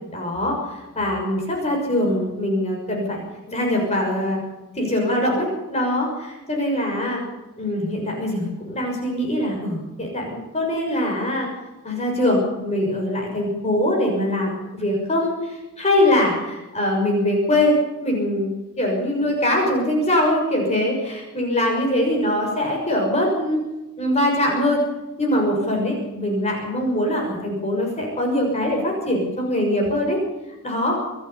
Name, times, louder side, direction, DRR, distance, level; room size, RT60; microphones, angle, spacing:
voice 1, 0.1-3.2 3.5-4.4 4.8-7.2 7.6-11.5 11.8-17.7 18.0-23.6 24.0-24.8 25.2-30.2 30.6-31.0, left 1 dB, 30° left, 0 dB, 6.4 m, -22 dB
27.0 x 11.5 x 8.6 m, 1.0 s
head